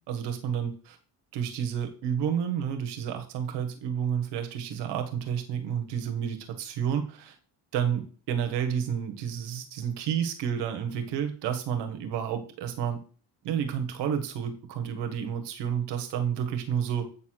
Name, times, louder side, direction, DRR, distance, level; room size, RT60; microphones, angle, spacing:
voice 1, 0.1-1.0 1.3-7.3 7.7-13.0 13.4-17.1, right 8 dB, 80° right, 6 dB, 1.6 m, -30 dB
8.3 x 4.3 x 6.4 m, 0.39 s
cardioid pair, 115°, 41 cm